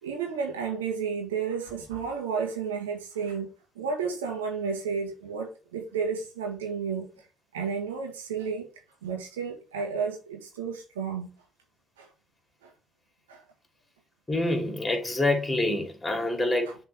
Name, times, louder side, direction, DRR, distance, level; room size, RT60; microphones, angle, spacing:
voice 1, 0.0-3.5 3.7-7.1 7.5-8.7 9.0-11.3 12.0-12.1 13.3-13.4, right 6 dB, 85° right, 1.7 m, -32 dB
voice 2, 14.3-16.8, left 2 dB, 20° left, 2.9 m, -26 dB
6.8 x 4.0 x 5.5 m
hypercardioid pair, 50°, 0 cm